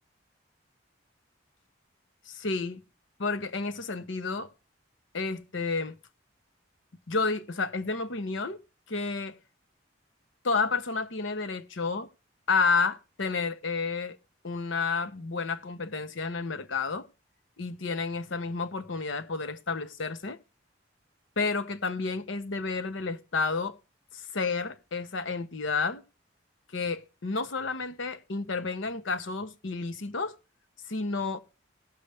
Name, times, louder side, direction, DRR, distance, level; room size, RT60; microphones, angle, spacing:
voice 1, 2.3-2.8 3.2-4.5 5.1-5.9 7.1-8.6 8.9-9.4 10.4-12.1 12.5-14.2 14.4-17.1 17.6-20.4 21.4-23.8 24.1-26.0 26.7-30.3 30.9-31.4, left 4 dB, 75° left, 0.9 m, -30 dB
17.5 x 6.6 x 3.4 m
head